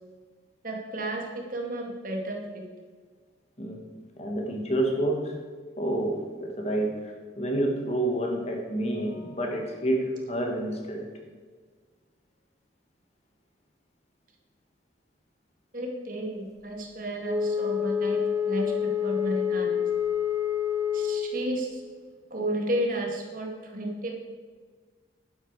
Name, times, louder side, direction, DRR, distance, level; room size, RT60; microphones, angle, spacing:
voice 1, 0.6-2.6 15.7-19.8 20.9-21.8 22.3-24.1, right 1 dB, 45° right, 0 dB, 2.2 m, -32 dB
voice 2, 4.2-5.4 5.8-11.1 21.6-21.7, right 1 dB, 35° left, 1 dB, 1.9 m, -29 dB
Wind instrument woodwind instrument, 17.2-21.4, left 8 dB, 20° right, 1.2 m, -27 dB
11.5 x 10.5 x 4.9 m, 1.5 s
head